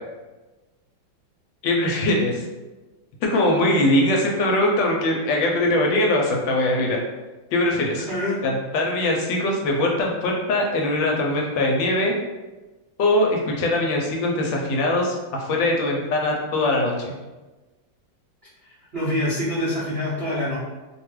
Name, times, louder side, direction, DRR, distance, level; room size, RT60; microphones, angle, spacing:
voice 1, 1.6-2.4 3.2-7.0 7.5-8.1 8.4-12.2 13.0-17.1, left 1 dB, 80° left, 0 dB, 1.3 m, -21 dB
voice 2, 8.1-8.4 18.9-20.6, left 1 dB, 55° right, -11 dB, 0.7 m, -25 dB
3.1 x 2.2 x 3.1 m, 1.2 s
omnidirectional pair, 2.1 m